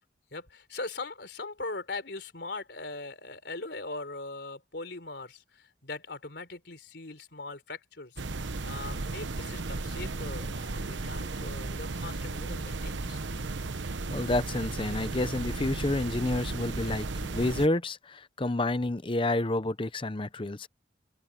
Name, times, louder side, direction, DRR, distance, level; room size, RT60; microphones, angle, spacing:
voice 1, 0.3-8.2 8.6-13.4, left 3 dB, 65° left, 4.0 m, -40 dB
sound 1, 8.2-17.7, right 3 dB, 80° right, 1.0 m, -35 dB
voice 2, 14.1-20.7, left 2 dB, 25° left, 0.8 m, -29 dB
head